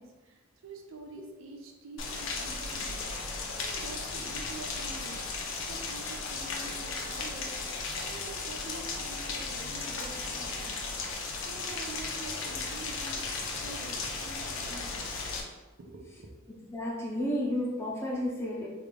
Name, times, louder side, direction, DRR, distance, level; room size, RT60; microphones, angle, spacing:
voice 1, 0.0-5.2 5.7-13.2 13.6-15.1 15.8-16.3, right 2 dB, 80° right, 3 dB, 0.5 m, -47 dB
Rain, 2.0-15.4, left 3 dB, 80° left, 0.5 m, -36 dB
voice 2, 16.7-18.7, left 1 dB, 15° left, -4 dB, 0.5 m, -31 dB
3.2 x 2.5 x 3.3 m, 1.2 s
head